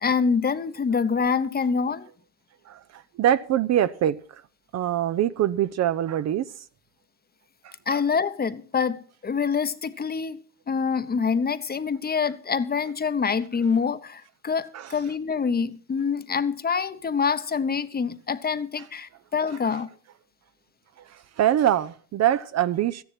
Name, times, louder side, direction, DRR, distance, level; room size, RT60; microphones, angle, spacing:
voice 1, 0.0-2.1 7.9-19.9, left 5 dB, 20° left, 0.9 m, -26 dB
voice 2, 2.7-4.4 4.7-6.4 7.9-8.0 14.7-15.0 21.0-23.0, right 11 dB, 40° right, 0.6 m, -24 dB
14.0 x 10.5 x 5.8 m
hypercardioid pair, 80°, 42 cm